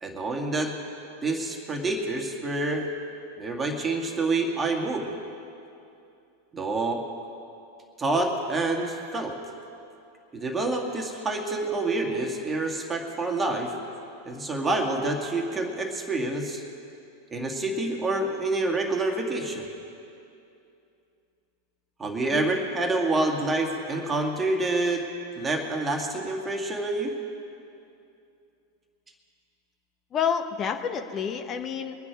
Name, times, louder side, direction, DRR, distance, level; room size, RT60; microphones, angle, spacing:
voice 1, 0.0-0.7 1.2-2.9 3.4-5.1 6.5-7.0 8.0-9.3 10.3-13.7 14.2-16.6 17.3-19.7 22.0-25.0 25.4-27.1, right 2 dB, 20° right, 2 dB, 2.1 m, -27 dB
voice 2, 30.1-31.9, left 7 dB, 30° left, 7 dB, 1.1 m, -29 dB
23.5 x 9.7 x 4.8 m, 2.6 s
figure-of-eight pair, 90°, 0 cm